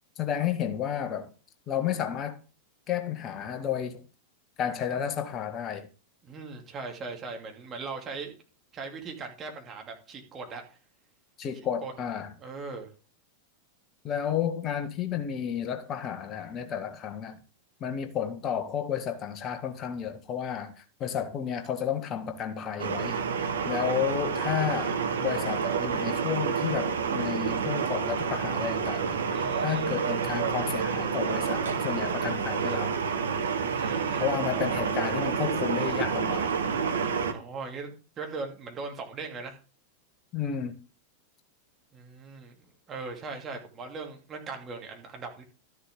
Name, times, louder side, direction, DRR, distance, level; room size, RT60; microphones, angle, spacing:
voice 1, 0.2-1.3 1.7-2.4 2.9-4.0 4.6-5.9 11.4-12.3 14.0-17.4 17.8-23.2 23.6-29.2 29.6-32.9 34.2-36.5 40.3-40.7, left 8 dB, 30° left, 1.4 m, -32 dB
voice 2, 6.2-8.3 8.7-10.8 11.8-11.9 12.4-12.9 29.3-29.9 33.6-34.7 37.3-39.6 41.9-42.5 42.9-45.4, right 4 dB, 25° right, 2.7 m, -39 dB
sound 1, 22.8-37.3, right 6 dB, 65° right, 1.2 m, -29 dB
13.0 x 7.3 x 3.7 m
figure-of-eight pair, 90°, 0 cm